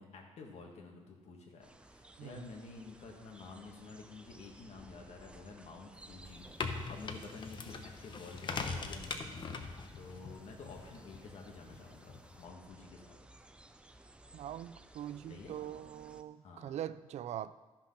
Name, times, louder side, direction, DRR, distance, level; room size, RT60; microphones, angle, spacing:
voice 1, 0.0-6.4 6.9-9.4 10.0-13.2 15.3-15.6 16.4-16.8, left 4 dB, 60° left, 1 dB, 1.9 m, -50 dB
sound 1, 1.6-16.2, right 1 dB, 10° right, 0.5 m, -58 dB
sound 2, 6.2-12.4, left 4 dB, 40° left, 0.8 m, -42 dB
voice 2, 14.3-17.5, right 11 dB, 65° right, 15 dB, 0.4 m, -42 dB
13.0 x 5.9 x 5.8 m, 1.2 s
cardioid pair, 140°, 12 cm